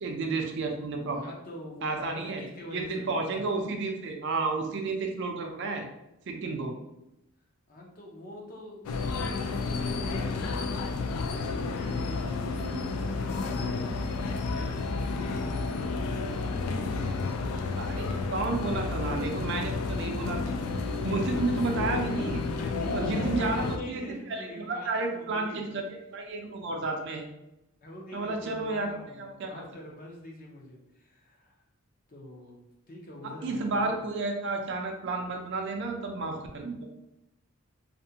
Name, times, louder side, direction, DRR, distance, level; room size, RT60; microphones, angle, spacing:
voice 1, 0.0-1.2 1.8-2.4 2.7-5.9 6.3-6.7 17.8-20.5 20.8-22.5 22.9-25.8 26.1-27.3 28.1-29.7 33.4-36.8, right 3 dB, 55° right, 3 dB, 0.4 m, -31 dB
voice 2, 1.1-3.5 7.7-12.4 12.8-13.8 14.5-17.7 22.5-25.8 27.8-31.6 32.1-32.6 32.9-33.9, left 1 dB, 40° left, -2 dB, 0.6 m, -45 dB
sound 1, 8.8-23.8, left 3 dB, 85° left, 0.3 m, -31 dB
2.5 x 2.1 x 2.7 m, 0.89 s
head